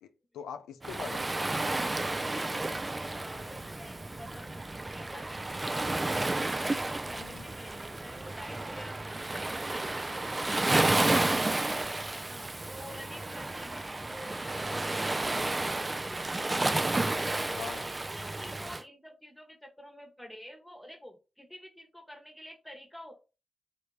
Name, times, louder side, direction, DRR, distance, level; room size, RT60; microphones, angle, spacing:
voice 1, 0.0-1.5 7.2-7.5 17.6-17.8, left 7 dB, 90° left, 0.3 m, -43 dB
Waves surf, 0.8-18.8, right 2 dB, 30° right, 0.4 m, -31 dB
voice 2, 3.1-6.4 6.7-10.6 11.0-14.3 14.6-16.8 17.3-23.1, equal, 5° left, 1.1 m, -49 dB
3.1 x 2.5 x 3.2 m
supercardioid pair, 40°, 0 cm